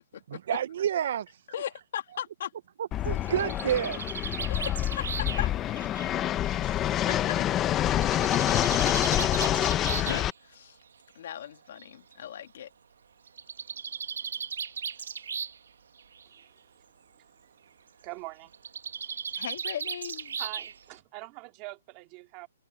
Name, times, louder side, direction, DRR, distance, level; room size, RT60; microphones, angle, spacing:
voice 1, 0.5-1.5 2.8-4.0, right 10 dB, 45° right, 0.5 m, -29 dB
voice 2, 1.5-2.5 4.5-5.5 6.4-7.5 9.9-10.8 11.2-12.7 19.3-20.4, left 10 dB, 45° left, 2.0 m, -38 dB
Fixed-wing aircraft airplane, 2.9-10.3, left 12 dB, 15° left, 0.6 m, -27 dB
Bird, 3.0-6.8 7.9-10.3 11.3-11.4 11.8-11.9 12.1-12.2 13.3-15.7 16.0-16.4 18.5-21.0, right 7 dB, 70° right, 1.2 m, -37 dB
voice 3, 18.0-18.5 20.4-22.5, right 22 dB, 20° right, 2.2 m, -43 dB
hypercardioid pair, 175°, 0 cm